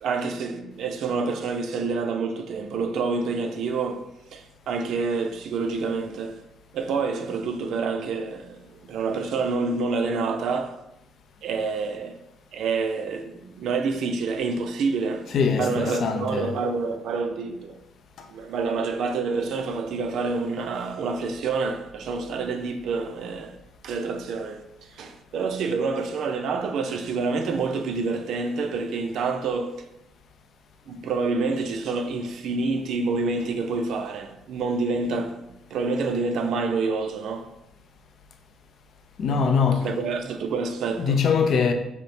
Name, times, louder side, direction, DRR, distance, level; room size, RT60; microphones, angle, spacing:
voice 1, 0.0-6.4 6.7-10.8 11.4-12.2 12.5-17.8 18.3-23.6 23.8-29.9 30.9-37.5 39.8-41.2, right 4 dB, 75° right, 0.5 m, -28 dB
voice 2, 15.3-16.6 18.2-18.3 39.2-39.9 41.0-41.7, left 5 dB, 65° left, 0.6 m, -22 dB
5.1 x 2.1 x 4.8 m
cardioid pair, 90°, 0 cm